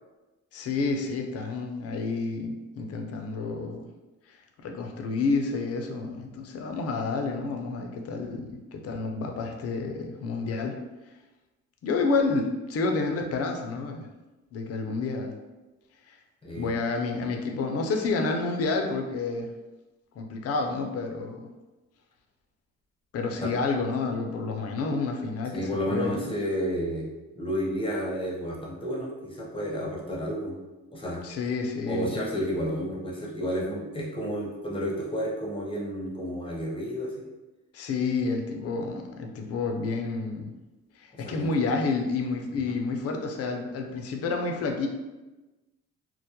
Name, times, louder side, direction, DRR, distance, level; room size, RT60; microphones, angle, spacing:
voice 1, 0.5-3.9 4.6-10.8 11.8-14.1 14.5-15.4 16.1-16.2 16.6-19.5 20.2-21.5 23.1-26.3 31.2-32.2 37.7-40.5 41.0-44.9, left 3 dB, 55° left, 3 dB, 0.5 m, -29 dB
voice 2, 16.4-16.7 23.4-23.5 25.5-27.1 27.4-30.6 30.9-31.2 31.9-37.3 41.1-41.5 42.7-42.8, equal, 15° left, -3 dB, 0.7 m, -31 dB
2.2 x 2.1 x 2.8 m, 1.1 s
cardioid pair, 90°, 30 cm